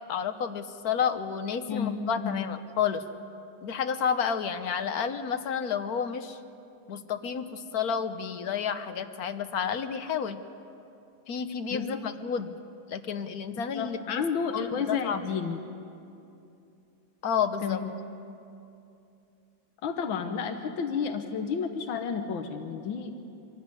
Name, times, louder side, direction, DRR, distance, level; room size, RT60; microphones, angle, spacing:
voice 1, 0.1-3.0 3.6-6.4 6.9-10.4 11.3-12.5 12.9-14.2 14.5-15.2 17.2-17.8, left 7 dB, 55° left, 10 dB, 1.3 m, -30 dB
voice 2, 1.7-2.5 11.7-12.0 13.8-15.6 17.6-17.8 19.8-23.2, left 6 dB, 80° left, 6 dB, 1.9 m, -31 dB
26.0 x 15.0 x 9.7 m, 2.7 s
omnidirectional pair, 2.1 m